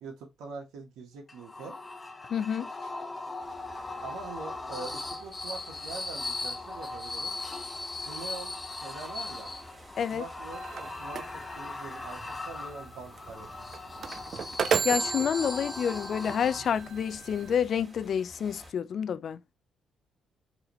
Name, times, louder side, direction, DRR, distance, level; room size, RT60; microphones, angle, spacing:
voice 1, 0.0-1.7 4.0-7.3 8.0-9.5 10.1-13.5, right 4 dB, 90° right, 1.4 m, -43 dB
sound 1, 1.3-17.0, left 3 dB, 25° left, 0.8 m, -39 dB
voice 2, 2.3-2.7 10.0-10.2 14.8-19.4, left 8 dB, 60° left, 0.3 m, -29 dB
sound 2, 3.4-18.7, equal, 15° right, 1.9 m, -53 dB
sound 3, 10.5-17.5, right 7 dB, 55° right, 0.4 m, -35 dB
4.9 x 3.2 x 3.0 m
cardioid pair, 90°, 0 cm